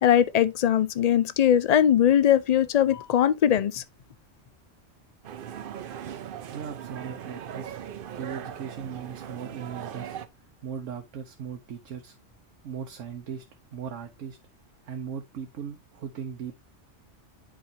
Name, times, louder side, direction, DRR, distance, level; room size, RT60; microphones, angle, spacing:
voice 1, 0.0-3.8, left 10 dB, 70° left, 0.3 m, -21 dB
sound 1, 5.2-10.3, right 9 dB, 55° right, 0.7 m, -39 dB
voice 2, 6.5-7.8 8.1-10.2 10.6-12.2 12.6-13.4 13.7-14.4 14.8-16.6, right 7 dB, 85° right, 1.2 m, -38 dB
10.0 x 4.7 x 2.7 m
omnidirectional pair, 1.2 m